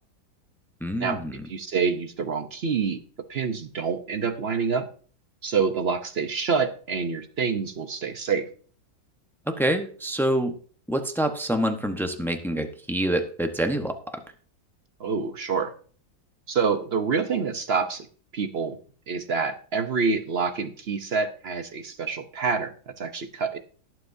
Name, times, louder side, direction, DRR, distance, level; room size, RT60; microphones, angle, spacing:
voice 1, 0.8-1.5 9.5-10.5 10.9-14.2, right 1 dB, 5° left, 6 dB, 0.4 m, -26 dB
voice 2, 1.5-3.0 3.3-4.9 5.4-8.5 15.0-15.7 16.5-18.1 18.3-18.8 19.1-23.6, right 5 dB, 55° right, 9 dB, 0.7 m, -27 dB
20.0 x 7.8 x 2.7 m, 0.43 s
omnidirectional pair, 2.0 m